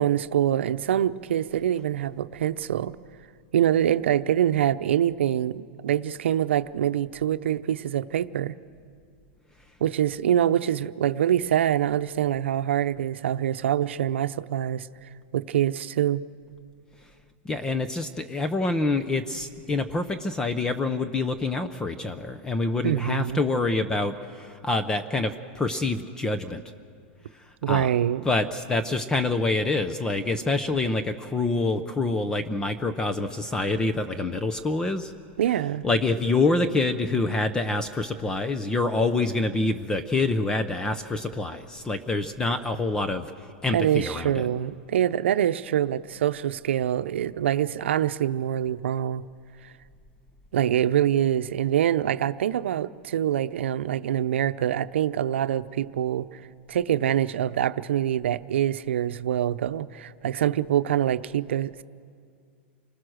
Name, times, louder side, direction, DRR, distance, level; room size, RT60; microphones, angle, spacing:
voice 1, 0.0-3.0 3.5-8.6 9.8-14.9 15.3-16.2 22.8-23.4 27.6-28.2 35.4-35.9 43.7-49.2 50.5-56.4 56.7-61.8, right 10 dB, 90° right, 12 dB, 0.7 m, -25 dB
voice 2, 17.4-26.6 27.3-27.9 28.2-35.1 35.8-43.3 43.6-44.5, left 2 dB, 10° left, 9 dB, 0.7 m, -26 dB
29.0 x 20.5 x 6.4 m, 2.3 s
supercardioid pair, 155°, 6 cm